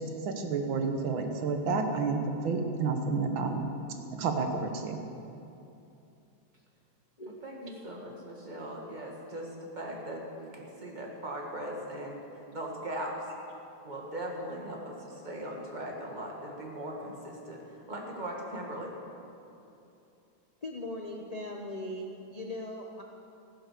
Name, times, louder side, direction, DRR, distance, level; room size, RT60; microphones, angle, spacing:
voice 1, 0.0-3.7 4.2-5.0, right 4 dB, 80° right, 5 dB, 1.9 m, -30 dB
voice 2, 7.3-13.2 13.8-18.9, right 1 dB, 25° right, -1 dB, 2.0 m, -39 dB
voice 3, 20.6-23.0, left 1 dB, 35° left, 0 dB, 0.6 m, -39 dB
15.0 x 10.5 x 6.8 m, 2.7 s
omnidirectional pair, 2.1 m